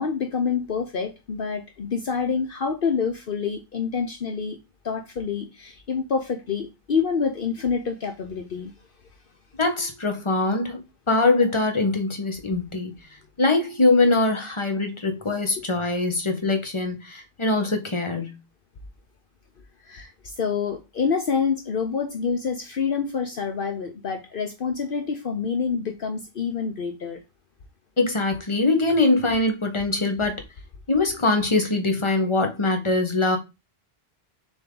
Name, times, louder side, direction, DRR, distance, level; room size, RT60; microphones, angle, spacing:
voice 1, 0.0-4.6 4.8-8.7 15.7-15.8 19.8-27.2, left 6 dB, 60° left, 1.0 m, -27 dB
voice 2, 9.6-10.8 11.1-12.9 13.4-18.4 28.0-30.4 30.9-33.4, left 2 dB, 30° left, 1.4 m, -22 dB
6.8 x 4.3 x 3.9 m
omnidirectional pair, 1.0 m